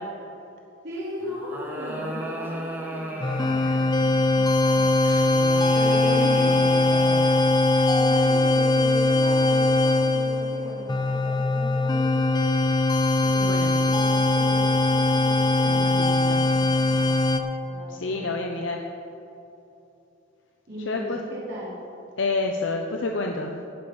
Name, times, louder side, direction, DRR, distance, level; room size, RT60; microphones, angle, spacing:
voice 1, 0.8-4.9 5.7-7.6 8.0-12.3 13.2-17.2 17.7-18.5 20.7-21.8, left 1 dB, 55° right, -8 dB, 3.3 m, -37 dB
sound 1, 1.2-4.0 5.0-7.6, right 1 dB, 10° right, 1.4 m, -35 dB
sound 2, 3.2-17.4, left 2 dB, 20° left, 0.5 m, -21 dB
voice 2, 13.4-13.7 15.7-16.4 17.9-18.8 20.9-21.2 22.2-23.7, left 3 dB, 65° left, 2 dB, 0.8 m, -29 dB
18.0 x 7.0 x 5.3 m, 2.8 s
head